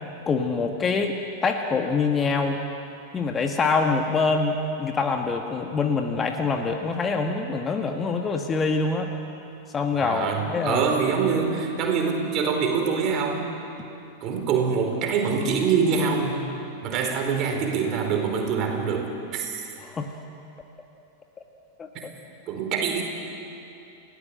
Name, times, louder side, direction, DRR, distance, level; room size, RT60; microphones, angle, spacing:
voice 1, 0.2-2.6 3.1-9.1 9.7-10.9 19.8-20.1 21.8-22.1, left 4 dB, 20° left, 4 dB, 1.7 m, -25 dB
voice 2, 10.0-13.5 14.2-16.4 16.8-19.6 21.9-22.0 22.5-23.0, right 5 dB, 35° right, 3 dB, 4.5 m, -25 dB
29.5 x 17.5 x 7.8 m, 2.7 s
figure-of-eight pair, 90°, 0 cm